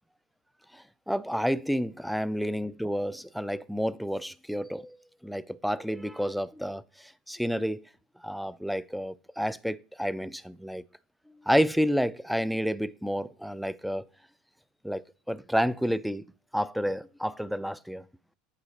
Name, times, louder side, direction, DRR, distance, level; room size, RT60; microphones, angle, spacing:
voice 1, 0.7-5.0 5.2-7.8 8.2-10.8 11.4-14.0 14.8-16.2 16.5-18.1, equal, ahead, 0.3 m, -30 dB
8.7 x 4.0 x 3.2 m
hypercardioid pair, 75°, 0 cm